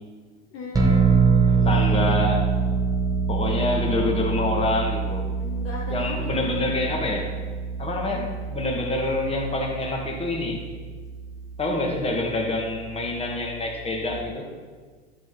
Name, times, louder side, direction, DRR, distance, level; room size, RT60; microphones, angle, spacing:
voice 1, 0.5-2.1 3.6-4.1 5.4-6.5 8.0-8.3, left 2 dB, 40° left, -1 dB, 1.4 m, -37 dB
sound 1, 0.7-14.2, right 5 dB, 10° right, 1.5 m, -26 dB
voice 2, 1.5-2.5 3.3-5.3 5.9-7.3 7.8-10.6 11.6-14.5, left 2 dB, 15° left, 1 dB, 1.9 m, -26 dB
11.5 x 6.2 x 4.1 m, 1.5 s
hypercardioid pair, 85°, 34 cm